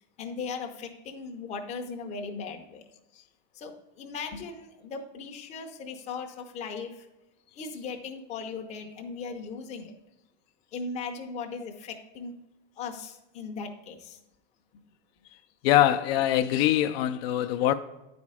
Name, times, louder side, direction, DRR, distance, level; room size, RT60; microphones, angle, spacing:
voice 1, 0.2-2.8 3.5-7.1 7.6-9.9 10.7-12.3 12.8-14.2, left 4 dB, 20° left, 0.6 m, -38 dB
voice 2, 15.6-17.7, left 12 dB, 60° left, 0.5 m, -23 dB
9.6 x 4.3 x 4.8 m
supercardioid pair, 170°, 34 cm